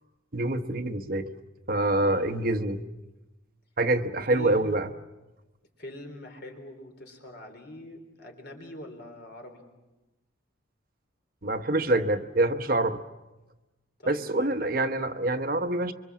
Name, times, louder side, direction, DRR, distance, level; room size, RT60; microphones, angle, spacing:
voice 1, 0.3-1.3 1.7-2.8 3.8-4.9 11.4-13.0 14.1-15.9, right 2 dB, 45° right, 8 dB, 1.0 m, -26 dB
voice 2, 2.0-2.6 4.3-4.8 5.8-9.6 14.0-14.7, left 1 dB, 55° left, 4 dB, 3.8 m, -43 dB
26.0 x 24.0 x 7.4 m, 1.1 s
head